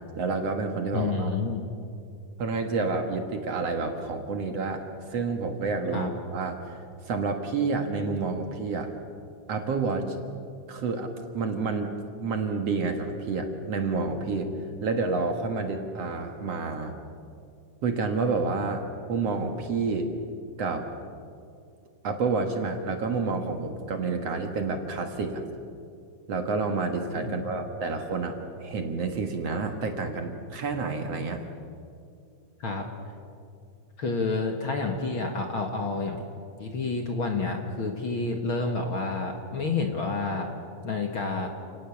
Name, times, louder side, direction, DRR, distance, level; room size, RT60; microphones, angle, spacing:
voice 1, 0.0-1.3 2.4-8.9 9.5-10.2 10.7-14.5 14.8-17.0 17.8-20.1 20.6-20.9 22.0-25.4 26.3-31.5, right 4 dB, 55° right, 5 dB, 2.3 m, -29 dB
voice 2, 0.9-1.6 5.9-6.1 27.2-27.6 32.6-32.9 34.0-36.2 36.6-40.5 40.8-41.5, left 3 dB, 45° left, 3 dB, 2.0 m, -29 dB
29.5 x 18.5 x 7.3 m, 2.4 s
omnidirectional pair, 3.8 m